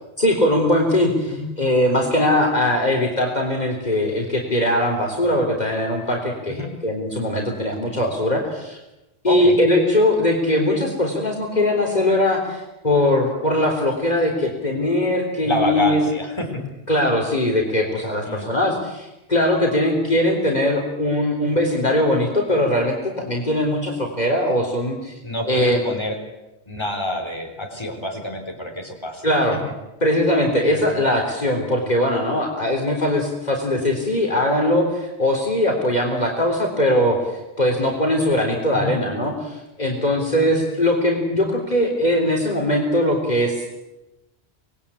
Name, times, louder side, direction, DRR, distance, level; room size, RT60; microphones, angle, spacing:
voice 1, 0.2-8.8 9.2-16.0 16.9-25.1 25.5-25.8 29.2-29.6 30.0-43.7, left 1 dB, 40° left, 1 dB, 3.9 m, -20 dB
voice 2, 9.3-9.6 15.4-16.6 18.2-18.5 25.2-26.2 26.7-29.3 30.7-30.8 38.7-39.0 40.3-40.5, left 1 dB, 25° left, 3 dB, 4.3 m, -27 dB
26.5 x 20.5 x 8.6 m, 0.98 s
omnidirectional pair, 1.1 m